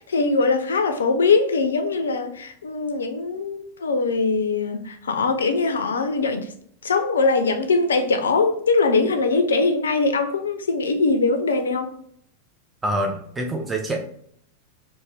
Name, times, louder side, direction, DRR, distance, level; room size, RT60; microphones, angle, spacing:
voice 1, 0.1-6.5 6.8-11.9, left 3 dB, 70° left, 7 dB, 0.3 m, -21 dB
voice 2, 12.8-14.0, right 1 dB, 10° right, 2 dB, 0.4 m, -26 dB
2.5 x 2.1 x 3.2 m, 0.64 s
figure-of-eight pair, 90°, 0 cm